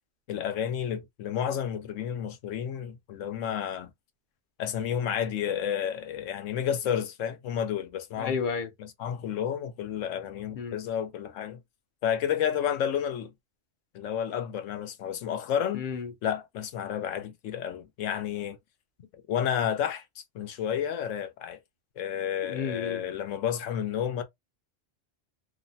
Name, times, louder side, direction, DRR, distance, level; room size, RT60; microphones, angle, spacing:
voice 1, 0.3-3.9 4.6-8.3 8.8-11.6 12.0-13.3 13.9-15.8 16.2-18.6 19.3-21.6 22.0-24.2, left 9 dB, 90° left, 1.0 m, -31 dB
voice 2, 8.2-8.7 10.6-10.8 15.7-16.1 22.4-23.0, left 6 dB, 55° left, 0.6 m, -32 dB
3.1 x 2.0 x 2.6 m
omnidirectional pair, 1.3 m